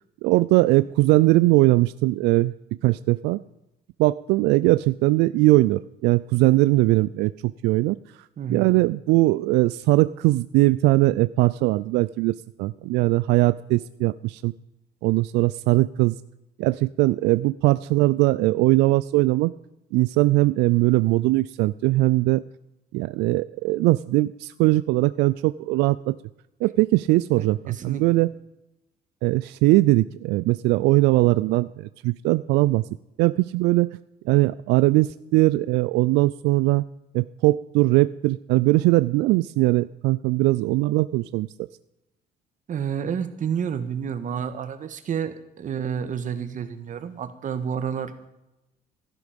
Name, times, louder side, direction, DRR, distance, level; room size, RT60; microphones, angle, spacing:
voice 1, 0.2-2.5 2.8-3.4 4.0-8.0 8.5-14.5 15.0-16.2 16.6-19.5 19.9-22.4 22.9-26.2 26.6-28.3 29.2-32.8 33.2-33.9 34.3-36.8 37.1-41.5, right 19 dB, 90° right, 16 dB, 0.4 m, -20 dB
voice 2, 8.4-8.8 27.4-28.2 42.7-48.3, right 7 dB, 50° right, 10 dB, 1.7 m, -30 dB
16.5 x 12.0 x 5.2 m, 0.93 s
cardioid pair, 110°, 17 cm